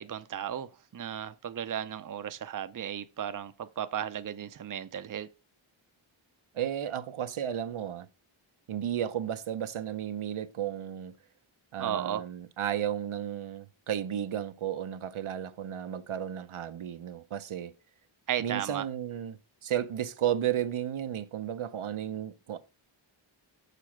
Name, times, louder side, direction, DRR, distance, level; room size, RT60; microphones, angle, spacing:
voice 1, 0.0-5.3 11.8-12.2 18.3-18.9, right 9 dB, 40° right, 0.5 m, -35 dB
voice 2, 6.5-8.1 8.7-11.1 11.7-17.7 18.4-22.6, right 10 dB, 80° right, 0.7 m, -33 dB
6.8 x 4.2 x 6.0 m
wide cardioid pair, 100°, 49 cm